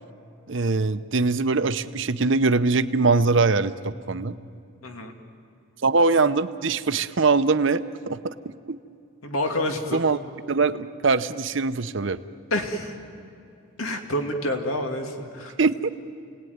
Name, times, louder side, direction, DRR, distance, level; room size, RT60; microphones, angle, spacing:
voice 1, 0.5-4.4 5.8-8.3 8.7-8.8 9.9-10.2 10.5-12.2 15.6-15.9, right 3 dB, 65° right, 12 dB, 0.8 m, -22 dB
voice 2, 4.8-5.1 9.2-10.0 12.5-12.9 13.8-15.5, left 1 dB, 90° left, 4 dB, 2.4 m, -28 dB
29.5 x 19.0 x 9.5 m, 2.5 s
head